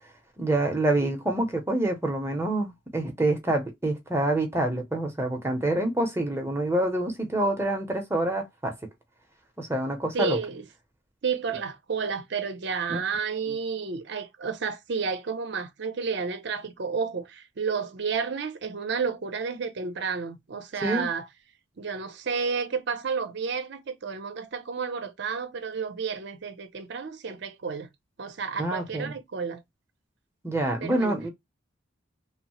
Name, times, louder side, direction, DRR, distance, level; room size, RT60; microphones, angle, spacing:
voice 1, 0.4-8.7 9.6-10.4 12.9-13.0 20.8-21.1 28.6-29.1 30.4-31.3, right 1 dB, 15° right, 0.6 m, -26 dB
voice 2, 10.1-10.6 11.2-21.3 21.8-27.9 28.2-29.6 30.8-31.2, right 5 dB, 60° right, 0.5 m, -31 dB
3.0 x 2.0 x 2.8 m
head